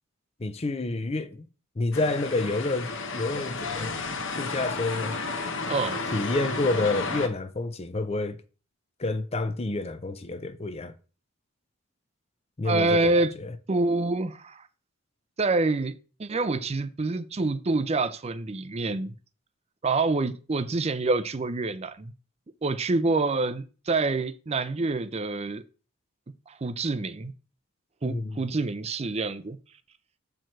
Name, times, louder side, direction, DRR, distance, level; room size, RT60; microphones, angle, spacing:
voice 1, 0.4-1.4 1.8-4.0 4.4-5.2 6.1-8.4 9.0-10.9 12.6-13.5 28.0-28.4, left 2 dB, 30° left, 0.5 m, -29 dB
sound 1, 1.9-7.3, left 3 dB, 60° left, 1.0 m, -32 dB
voice 2, 5.7-6.0 12.6-13.3 13.7-14.7 15.4-19.1 19.8-22.1 22.6-25.6 26.5-27.3 28.0-29.6, right 3 dB, 30° right, 0.5 m, -26 dB
7.6 x 4.6 x 4.5 m
head